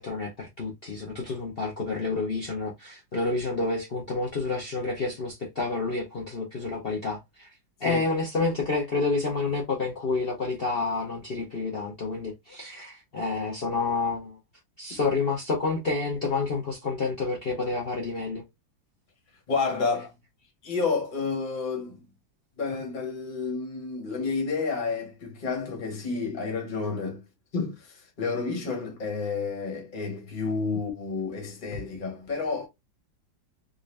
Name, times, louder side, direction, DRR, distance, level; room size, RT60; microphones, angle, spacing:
voice 1, 0.0-7.5 7.8-14.4 14.8-18.4, left 3 dB, 60° left, 0.6 m, -29 dB
voice 2, 19.5-20.1 20.6-22.0 22.6-27.2 27.5-32.7, left 4 dB, 30° left, 1.1 m, -30 dB
3.7 x 2.6 x 3.2 m
omnidirectional pair, 2.2 m